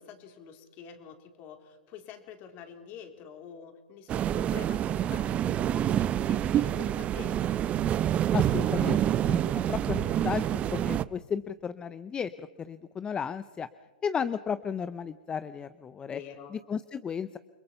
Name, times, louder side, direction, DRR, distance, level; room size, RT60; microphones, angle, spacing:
voice 1, 0.0-7.5 16.1-16.6, left 8 dB, 40° left, 5 dB, 3.7 m, -47 dB
sound 1, 4.1-11.0, right 11 dB, 25° right, 0.6 m, -27 dB
voice 2, 8.3-9.0 9.3-10.4 10.7-13.7 14.0-16.2 16.7-17.4, left 7 dB, 20° left, 13 dB, 0.6 m, -34 dB
29.5 x 22.0 x 5.7 m, 1.2 s
hypercardioid pair, 120°, 5 cm